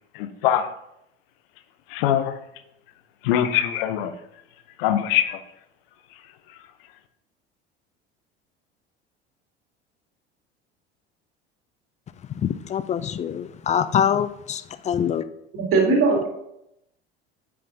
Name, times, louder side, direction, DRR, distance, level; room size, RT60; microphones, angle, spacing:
voice 1, 0.1-0.7 1.9-2.3 3.2-4.1 4.8-5.4, left 11 dB, 60° left, 0.7 m, -22 dB
voice 2, 12.3-15.2, left 8 dB, 25° left, 0.4 m, -24 dB
voice 3, 15.5-16.3, right 3 dB, 45° right, 2.7 m, -19 dB
9.4 x 5.5 x 2.6 m
figure-of-eight pair, 65°, 31 cm